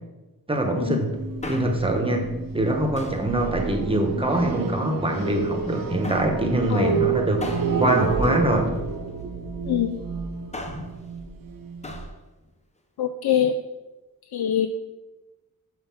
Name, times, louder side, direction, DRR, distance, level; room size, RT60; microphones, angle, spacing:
voice 1, 0.5-1.2 1.5-2.3 2.5-8.7 10.7-10.8, right 1 dB, 15° right, 3 dB, 1.0 m, -23 dB
sound 1, 1.1-12.1, right 6 dB, 65° right, 0.7 m, -30 dB
Male speech man speaking, 1.2-2.0 3.0-3.3 4.1-4.9 6.0-6.4 7.4-9.1 10.3-11.0 11.8-12.2 12.4-12.5, left 2 dB, 20° left, 0.7 m, -38 dB
voice 2, 9.7-10.0 13.0-13.6 14.3-14.7, left 9 dB, 90° left, 7 dB, 0.5 m, -23 dB
5.7 x 5.5 x 5.7 m, 1.1 s
wide cardioid pair, 145°, 37 cm